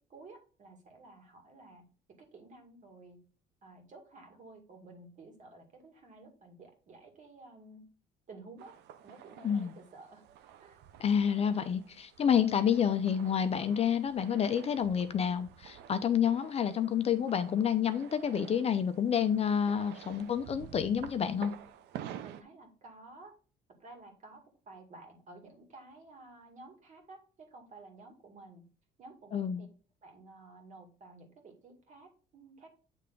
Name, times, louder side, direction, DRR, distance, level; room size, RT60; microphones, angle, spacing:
voice 1, 0.0-1.8 2.2-3.2 3.6-7.9 8.3-8.8 9.0-10.2 10.6-10.8 22.2-23.3 23.8-27.2 27.5-28.6 29.0-29.7 30.0-32.7, right 3 dB, 45° right, 3 dB, 2.1 m, -53 dB
sound 1, 8.6-22.4, right 10 dB, 80° right, 0.6 m, -50 dB
voice 2, 11.0-21.5 29.3-29.6, left 8 dB, 35° left, 11 dB, 0.5 m, -29 dB
8.2 x 3.4 x 3.8 m, 0.38 s
cardioid pair, 110°, 17 cm